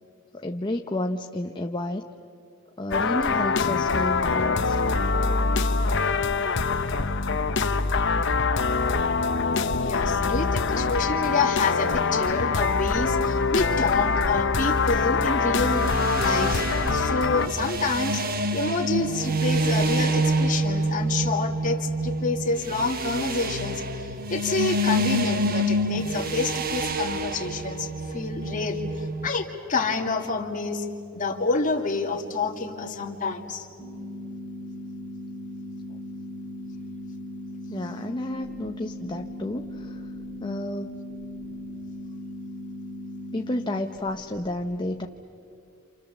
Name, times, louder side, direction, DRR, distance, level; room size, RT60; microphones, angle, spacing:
voice 1, 0.3-2.1 2.8-4.8 35.9-36.0 37.7-40.1 40.4-41.0 43.3-45.1, left 1 dB, 20° left, 4 dB, 0.7 m, -31 dB
sound 1, 2.9-17.5, left 4 dB, 55° left, 0.9 m, -24 dB
voice 2, 9.8-15.9 16.2-16.7 16.9-30.9 31.1-33.7 41.5-41.6, left 3 dB, 35° left, 1 dB, 2.3 m, -28 dB
sound 2, 15.6-29.3, right 1 dB, 45° right, 1.1 m, -27 dB
sound 3, 33.8-43.8, left 1 dB, 5° right, 3.1 m, -38 dB
29.5 x 28.0 x 7.2 m, 2.6 s
head